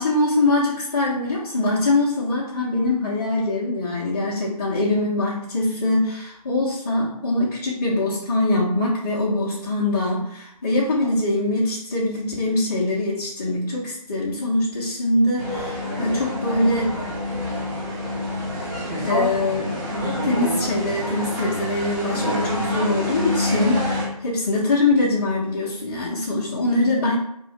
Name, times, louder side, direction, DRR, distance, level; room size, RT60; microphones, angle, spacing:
voice 1, 0.0-16.9 18.9-19.8 20.1-27.2, left 2 dB, 20° left, -8 dB, 0.5 m, -23 dB
sound 1, 15.4-24.1, left 1 dB, 30° right, 0.9 m, -27 dB
2.8 x 2.4 x 3.9 m, 0.73 s
figure-of-eight pair, 145°, 20 cm